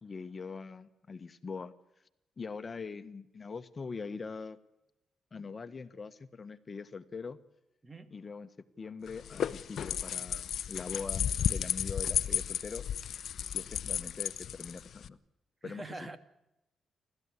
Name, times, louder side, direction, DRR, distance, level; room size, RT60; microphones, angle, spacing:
voice 1, 0.0-1.7 2.4-4.6 5.3-7.4 8.1-12.9 13.5-15.2 15.6-16.1, left 4 dB, 40° left, 1.3 m, -42 dB
sound 1, 9.1-15.1, left 9 dB, 70° left, 0.8 m, -33 dB
voice 2, 15.6-16.2, right 2 dB, 30° right, 2.4 m, -43 dB
29.0 x 13.5 x 9.7 m
supercardioid pair, 55°, 0 cm